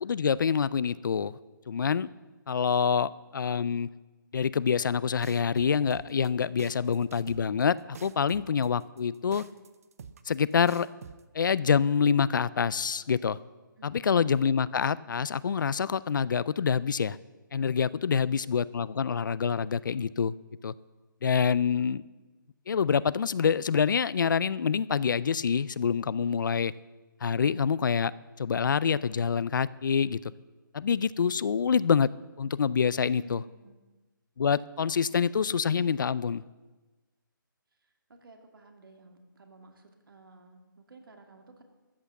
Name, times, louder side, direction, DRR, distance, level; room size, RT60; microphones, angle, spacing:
voice 1, 0.0-1.3 1.7-2.1 2.5-3.9 4.3-9.4 10.3-10.9 11.3-13.4 13.8-17.2 17.5-20.3 20.6-20.7 21.2-22.0 22.7-26.7 27.2-28.1 28.4-30.2 30.7-32.1 32.4-33.4 34.4-36.4, left 6 dB, 65° left, 19 dB, 0.4 m, -26 dB
sound 1, 5.2-11.2, right 6 dB, 45° right, 0.6 m, -47 dB
voice 2, 13.8-14.2 33.1-33.8 37.8-37.9 38.2-41.6, right 2 dB, 80° right, 4 dB, 2.4 m, -53 dB
13.5 x 8.2 x 7.1 m, 1.2 s
hypercardioid pair, 170°, 11 cm